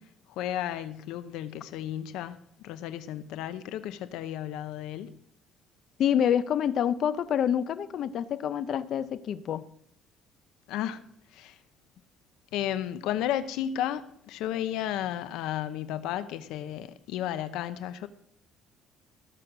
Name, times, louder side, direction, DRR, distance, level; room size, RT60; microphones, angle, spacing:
voice 1, 0.4-2.4 2.6-5.2 10.7-11.0 11.3-11.5 12.5-18.1, left 11 dB, 85° left, 0.8 m, -33 dB
voice 2, 6.0-9.6, left 9 dB, 50° left, 0.7 m, -27 dB
18.0 x 6.5 x 6.0 m
cardioid pair, 150°, 0 cm